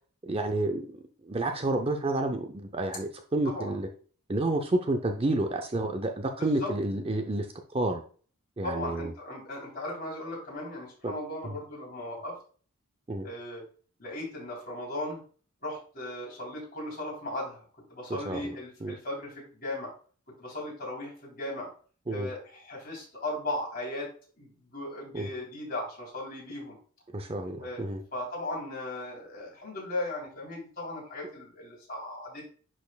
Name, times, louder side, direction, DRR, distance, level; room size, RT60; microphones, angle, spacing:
voice 1, 0.2-3.9 4.3-7.5 7.7-8.0 8.6-9.1 11.0-11.1 11.4-11.5 13.1-13.3 18.1-18.5 18.8-19.0 22.1-22.3 25.1-25.3 27.1-28.0, right 2 dB, 25° right, 5 dB, 0.5 m, -30 dB
voice 2, 3.4-3.8 6.4-6.7 8.6-12.3 13.2-13.7 14.0-15.2 15.6-17.6 17.9-19.9 20.4-21.7 22.1-26.8 27.6-32.5, left 1 dB, 40° left, -3 dB, 3.4 m, -37 dB
10.5 x 4.3 x 2.3 m, 0.41 s
head